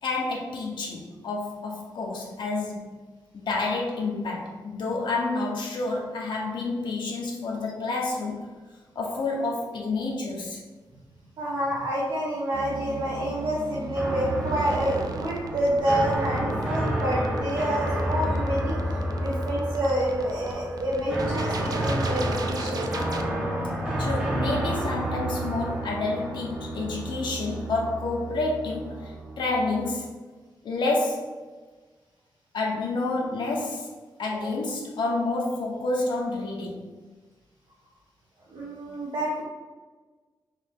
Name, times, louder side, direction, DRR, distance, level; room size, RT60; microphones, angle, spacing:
voice 1, 0.0-3.0 3.3-8.5 8.9-10.6 24.0-30.1 30.6-31.4 32.5-33.9 34.2-36.9, left 3 dB, 75° left, -2 dB, 0.7 m, -29 dB
voice 2, 11.4-18.8 19.2-22.9 38.5-39.4, right 1 dB, 75° right, -6 dB, 0.8 m, -28 dB
sound 1, 12.5-23.2, right 3 dB, 55° right, 0.4 m, -38 dB
sound 2, 13.9-29.9, right 1 dB, 15° right, 1.0 m, -30 dB
3.9 x 2.6 x 3.5 m, 1.3 s
wide cardioid pair, 140°, 8 cm